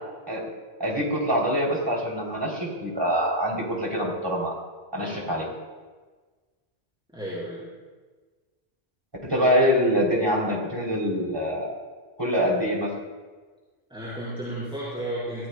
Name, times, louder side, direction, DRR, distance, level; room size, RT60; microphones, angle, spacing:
voice 1, 0.8-4.5 4.9-5.4 9.2-11.8 12.2-12.9, equal, 20° right, -2 dB, 3.3 m, -24 dB
voice 2, 4.9-5.3 7.1-7.7 13.9-15.5, right 1 dB, 5° right, -10 dB, 4.7 m, -33 dB
23.5 x 16.0 x 2.3 m, 1.4 s
omnidirectional pair, 1.1 m